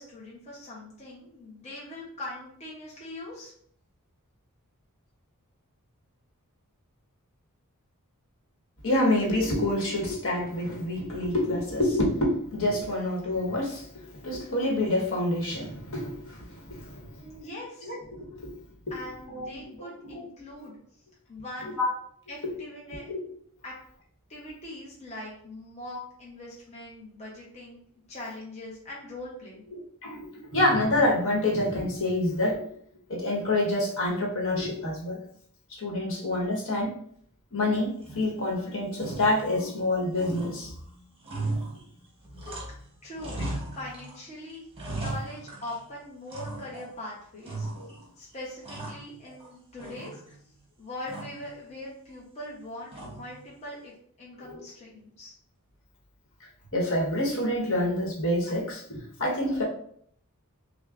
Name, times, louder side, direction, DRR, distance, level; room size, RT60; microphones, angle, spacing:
voice 1, 0.0-3.5 17.0-17.9 18.9-20.8 21.3-21.8 22.3-23.1 23.6-23.8 24.3-27.8 28.1-29.6 42.7-42.8 43.0-43.5 43.7-44.7 44.9-47.7 48.2-50.4 50.8-53.9 54.2-55.3, left 1 dB, 30° left, -5 dB, 0.8 m, -41 dB
voice 2, 8.8-17.1 17.4-17.5 17.8-18.5 18.9-19.0 19.3-20.2 21.8-21.9 22.4-22.5 23.1-23.2 29.7-32.6 33.1-35.2 35.7-36.9 37.5-40.7 54.5-54.6 56.7-59.6, left 1 dB, 65° left, -3 dB, 1.2 m, -27 dB
sound 1, 38.0-38.6 38.9-39.9 40.1-42.9 43.2-44.2 44.5-45.9 46.3-47.0 47.4-48.1 48.4-49.5 49.8-50.5 51.1-51.5 52.9-53.4, right 2 dB, 25° right, 1.0 m, -37 dB
6.0 x 2.2 x 2.5 m, 0.63 s
head